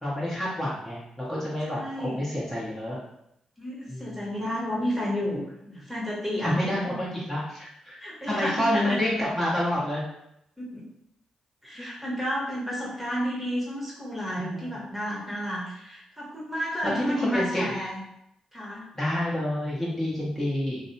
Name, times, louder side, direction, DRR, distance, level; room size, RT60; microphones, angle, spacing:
voice 1, 0.0-3.0 3.9-4.3 6.4-8.0 8.3-10.0 11.8-11.9 14.4-14.7 16.9-17.6 18.9-20.8, left 1 dB, 15° left, -7 dB, 1.0 m, -28 dB
voice 2, 1.7-2.3 3.6-6.8 8.0-9.0 10.6-10.9 11.6-18.0 18.5-18.9, equal, 5° right, -6 dB, 1.1 m, -31 dB
2.6 x 2.1 x 2.8 m, 0.79 s
supercardioid pair, 45°, 2 cm